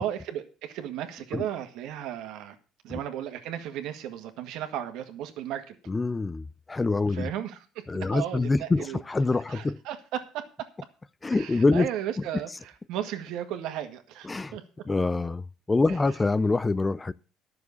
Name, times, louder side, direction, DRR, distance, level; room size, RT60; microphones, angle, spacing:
voice 1, 0.0-2.6 2.8-5.7 7.1-9.0 9.5-10.4 11.3-14.6 15.9-16.0, right 11 dB, 75° right, 1.7 m, -35 dB
voice 2, 5.9-7.3 7.9-9.8 11.2-11.9 14.2-14.6 14.9-17.1, left 3 dB, 20° left, 0.4 m, -25 dB
11.0 x 6.9 x 6.9 m
supercardioid pair, 90°, 0 cm